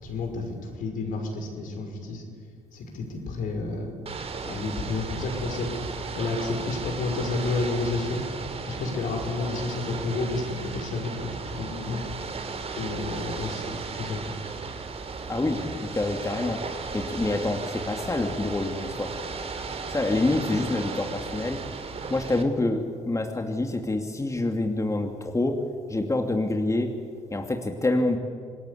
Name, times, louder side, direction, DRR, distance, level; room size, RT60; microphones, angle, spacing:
voice 1, 0.0-2.2 2.7-3.9 4.4-5.7 6.1-8.2 8.7-11.1 11.4-12.0 12.8-14.2, left 3 dB, 60° left, 3 dB, 5.7 m, -30 dB
Ocean / Boat Water vehicle, 4.1-22.4, right 4 dB, 40° right, 3.0 m, -35 dB
voice 2, 15.9-16.6 16.9-19.1 19.9-21.6 22.1-25.6 25.9-26.9 27.3-28.2, left 2 dB, 20° left, 4 dB, 2.7 m, -26 dB
27.5 x 20.0 x 8.5 m, 2.1 s
hypercardioid pair, 50°, 15 cm